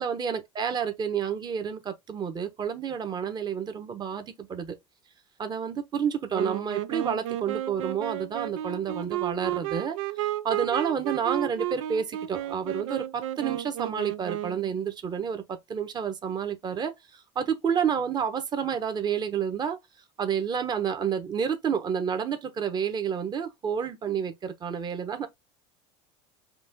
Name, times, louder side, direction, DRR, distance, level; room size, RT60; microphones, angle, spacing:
voice 1, 0.0-4.8 5.4-19.8 20.2-25.3, right 7 dB, 30° right, 1.1 m, -30 dB
Wind instrument woodwind instrument, 6.3-14.7, right 13 dB, 85° right, 0.6 m, -32 dB
5.2 x 2.5 x 3.7 m
supercardioid pair, 120°, 15 cm